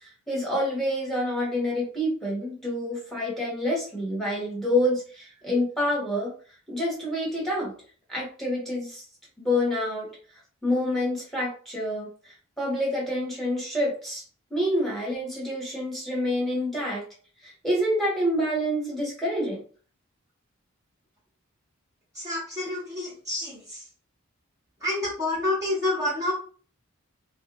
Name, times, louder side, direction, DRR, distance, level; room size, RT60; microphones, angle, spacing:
voice 1, 0.3-6.3 6.7-7.7 8.1-9.0 9.4-10.1 10.6-14.2 14.5-17.0 17.4-19.6, left 1 dB, ahead, -4 dB, 1.1 m, -27 dB
voice 2, 22.1-23.9 24.8-26.3, left 2 dB, 15° right, -8 dB, 0.8 m, -28 dB
3.2 x 2.2 x 2.9 m, 0.41 s
head